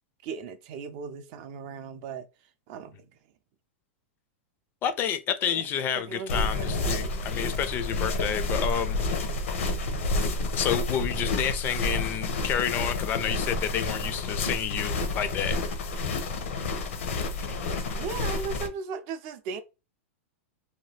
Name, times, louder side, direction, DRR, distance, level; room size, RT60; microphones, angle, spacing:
voice 1, 0.2-2.2 2.7-3.1 5.5-5.6 6.0-7.2 17.9-19.6, right 5 dB, 45° right, 0.4 m, -37 dB
voice 2, 4.8-9.0 10.1-15.6, left 9 dB, 30° left, 0.4 m, -30 dB
sound 1, 6.3-18.7, left 2 dB, 85° left, 0.8 m, -29 dB
2.7 x 2.3 x 3.2 m
supercardioid pair, 145°, 7 cm